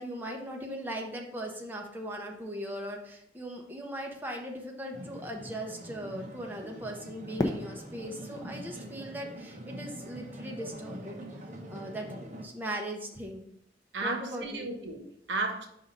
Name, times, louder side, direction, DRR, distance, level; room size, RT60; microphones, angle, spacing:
voice 1, 0.0-11.2 11.7-13.5 14.0-14.7, right 1 dB, 10° right, 0.8 m, -39 dB
sound 1, 4.9-12.4, equal, 45° right, 1.0 m, -44 dB
Fireworks, 7.4-10.4, left 1 dB, 25° left, 0.5 m, -37 dB
voice 2, 13.9-15.7, right 3 dB, 90° right, 1.0 m, -34 dB
5.1 x 3.7 x 5.5 m
head